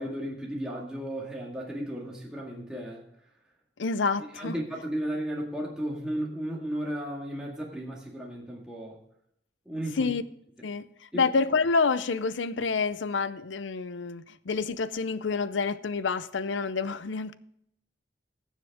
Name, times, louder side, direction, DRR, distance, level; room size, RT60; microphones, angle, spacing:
voice 1, 0.0-3.0 4.4-9.0 9.7-10.1 11.1-11.3, right 1 dB, 5° right, 1.9 m, -34 dB
voice 2, 3.8-4.6 10.0-10.2 10.6-17.3, left 4 dB, 90° left, 0.6 m, -28 dB
19.0 x 7.4 x 3.6 m
head